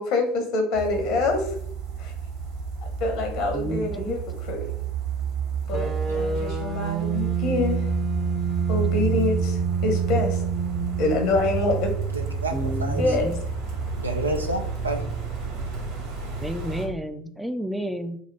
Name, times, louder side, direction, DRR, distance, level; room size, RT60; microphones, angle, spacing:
voice 1, 0.0-1.5 2.0-2.1 3.0-4.7 5.7-7.9 8.7-10.4 11.0-11.9 13.0-13.3, left 2 dB, 55° left, 4 dB, 1.1 m, -26 dB
sound 1, 0.7-16.9, right 5 dB, 60° right, 1.5 m, -29 dB
voice 2, 3.5-4.2 12.5-13.3 16.4-18.2, equal, 5° right, 8 dB, 0.4 m, -31 dB
sound 2, 5.7-11.8, right 8 dB, 40° right, 0.8 m, -30 dB
voice 3, 12.1-13.2 14.0-15.0, right 2 dB, 85° right, 4 dB, 0.5 m, -29 dB
5.8 x 2.0 x 3.4 m, 0.64 s
figure-of-eight pair, 70°, 0 cm